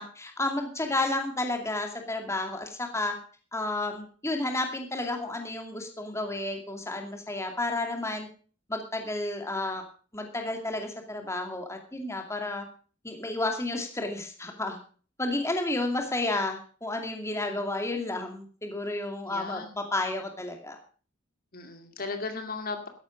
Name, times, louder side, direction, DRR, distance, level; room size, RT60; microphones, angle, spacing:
voice 1, 0.0-3.2 3.5-8.3 8.7-9.8 10.1-12.6 13.0-14.8 15.2-20.8, left 2 dB, 15° left, 4 dB, 2.4 m, -31 dB
voice 2, 19.2-19.7 21.5-22.9, left 3 dB, 45° left, 6 dB, 2.3 m, -36 dB
13.5 x 11.5 x 5.1 m, 0.40 s
head